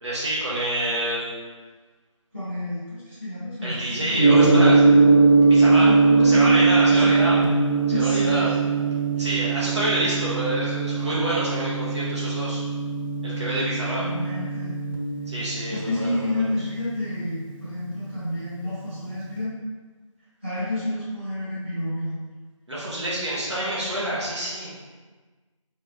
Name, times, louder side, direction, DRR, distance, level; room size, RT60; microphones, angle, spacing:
voice 1, 0.0-1.3 3.6-4.8 5.5-5.9 6.2-7.4 7.9-8.5 9.2-12.6 13.2-14.0 15.3-16.3 22.7-24.7, right 1 dB, 55° right, -8 dB, 1.0 m, -27 dB
voice 2, 2.3-4.3 5.7-6.6 6.9-7.3 7.9-8.7 9.2-9.3 14.0-14.8 15.7-19.6 20.4-22.2, left 1 dB, 20° right, -13 dB, 1.3 m, -30 dB
Gong, 4.2-18.3, right 4 dB, 45° left, 1.0 m, -21 dB
4.8 x 3.1 x 2.3 m, 1.4 s
figure-of-eight pair, 175°, 17 cm